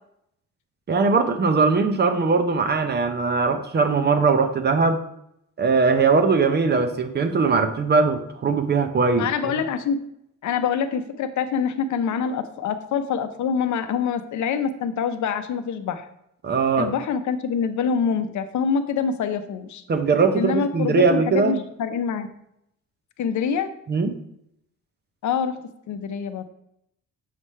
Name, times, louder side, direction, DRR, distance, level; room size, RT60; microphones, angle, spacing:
voice 1, 0.9-5.0 5.6-9.3 16.4-16.9 19.9-21.6 23.9-24.2, right 4 dB, 30° right, 8 dB, 0.6 m, -20 dB
voice 2, 9.2-10.0 10.4-16.1 16.8-19.8 20.3-22.3 23.2-23.7 25.2-25.6 25.9-26.4, left 6 dB, 65° left, 10 dB, 0.6 m, -25 dB
7.4 x 3.2 x 5.5 m, 0.76 s
wide cardioid pair, 170°, 32 cm